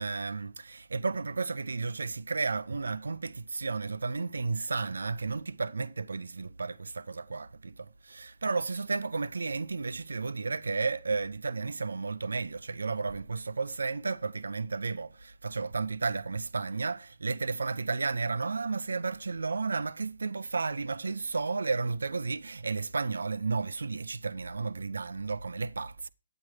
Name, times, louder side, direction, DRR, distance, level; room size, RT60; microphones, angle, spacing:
voice 1, 0.0-26.1, right 4 dB, 75° right, 0.6 m, -33 dB
9.3 x 8.8 x 4.8 m
figure-of-eight pair, 135°, 0 cm